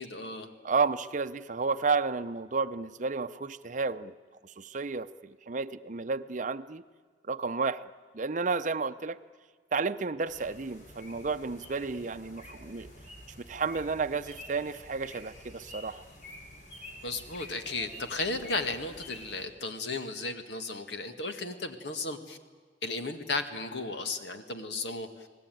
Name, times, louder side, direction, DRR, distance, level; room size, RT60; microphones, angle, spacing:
voice 1, 0.0-0.5 17.0-22.4 22.8-25.1, left 3 dB, 70° left, 7 dB, 1.9 m, -35 dB
voice 2, 0.6-4.1 4.6-6.8 7.3-7.9 8.1-9.2 9.7-12.9 13.4-16.0, right 4 dB, 45° right, 12 dB, 0.7 m, -32 dB
sound 1, 10.2-19.4, left 1 dB, 45° left, 5.0 m, -48 dB
29.5 x 19.5 x 9.3 m, 1.6 s
head